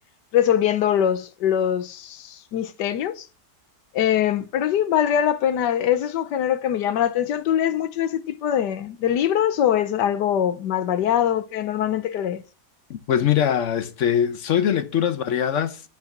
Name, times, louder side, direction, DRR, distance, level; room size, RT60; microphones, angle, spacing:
voice 1, 0.3-3.3 3.9-12.4, left 10 dB, 90° left, 1.4 m, -22 dB
voice 2, 12.9-15.8, left 9 dB, 60° left, 0.8 m, -22 dB
9.4 x 4.8 x 5.9 m
omnidirectional pair, 1.8 m